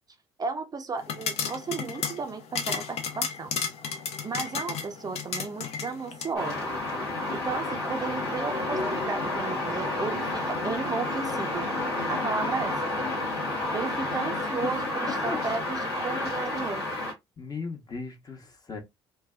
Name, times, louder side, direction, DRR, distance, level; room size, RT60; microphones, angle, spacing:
voice 1, 0.4-3.5 4.2-6.7 7.3-11.7 12.1-12.8 13.7-16.8, right 4 dB, 30° right, 0.5 m, -34 dB
sound 1, 1.0-6.3, left 6 dB, 55° left, 0.7 m, -33 dB
sound 2, 6.3-17.1, left 2 dB, 85° left, 1.2 m, -30 dB
voice 2, 17.4-18.8, left 4 dB, 30° left, 1.0 m, -37 dB
3.2 x 2.2 x 2.3 m
hypercardioid pair, 55°, 13 cm